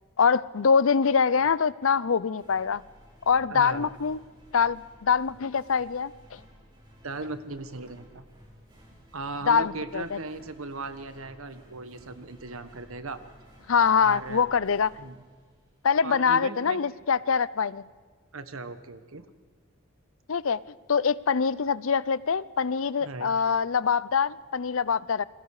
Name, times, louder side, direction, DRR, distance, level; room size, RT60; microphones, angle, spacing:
voice 1, 0.2-2.8 3.3-4.2 4.5-6.4 9.5-10.2 13.7-14.9 15.8-17.8 20.3-20.6 20.9-25.2, left 6 dB, 75° left, 19 dB, 0.6 m, -24 dB
sound 1, 2.3-16.0, equal, 20° right, 4.8 m, -55 dB
voice 2, 3.5-3.9 7.0-8.3 9.1-13.2 14.0-14.5 15.0-15.2 16.0-16.8 18.3-19.3 23.0-23.3, right 3 dB, 85° right, 11 dB, 1.4 m, -37 dB
29.5 x 22.0 x 4.9 m, 1.5 s
head